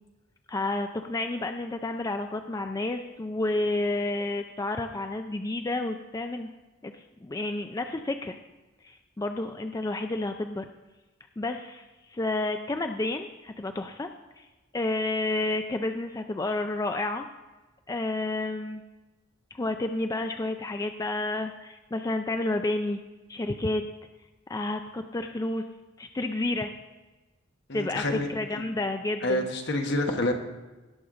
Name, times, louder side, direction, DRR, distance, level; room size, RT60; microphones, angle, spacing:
voice 1, 0.5-6.5 6.8-8.4 8.8-10.7 11.4-14.1 14.4-14.5 14.7-17.3 17.9-18.8 19.5-23.0 23.3-23.8 24.5-25.6 26.0-26.7 27.7-29.5, left 2 dB, 15° left, 6 dB, 0.4 m, -30 dB
voice 2, 27.7-28.7 29.2-30.3, left 1 dB, 60° left, 4 dB, 1.3 m, -28 dB
18.0 x 6.5 x 3.8 m, 1.2 s
head